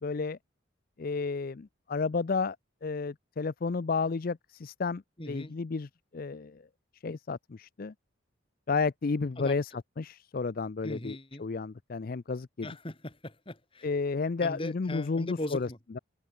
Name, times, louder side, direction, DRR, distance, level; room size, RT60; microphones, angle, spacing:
voice 1, 0.0-0.4 1.0-2.6 2.8-6.6 7.0-7.9 8.7-9.7 10.0-12.7 13.8-15.7, left 4 dB, 45° left, 0.5 m, -32 dB
voice 2, 5.2-5.5 9.4-9.6 10.8-11.4 12.6-13.9 14.4-15.8, left 1 dB, 25° left, 2.7 m, -39 dB
head